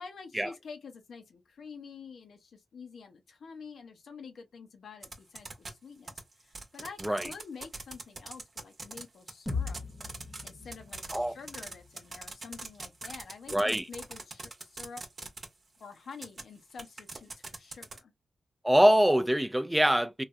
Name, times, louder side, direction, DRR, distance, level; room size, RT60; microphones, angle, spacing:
voice 1, 0.0-9.8 10.2-15.0 15.8-18.1, left 5 dB, 80° left, 0.7 m, -48 dB
sound 1, 5.0-5.7 6.1-9.0 9.3-15.4 16.1-16.4 16.8-18.0, right 3 dB, 45° right, 0.8 m, -40 dB
sound 2, 9.5-13.4, left 4 dB, 20° left, 0.8 m, -40 dB
voice 2, 13.5-13.9 18.6-20.2, equal, 10° right, 0.3 m, -24 dB
3.2 x 2.2 x 2.5 m
cardioid pair, 70°, 0 cm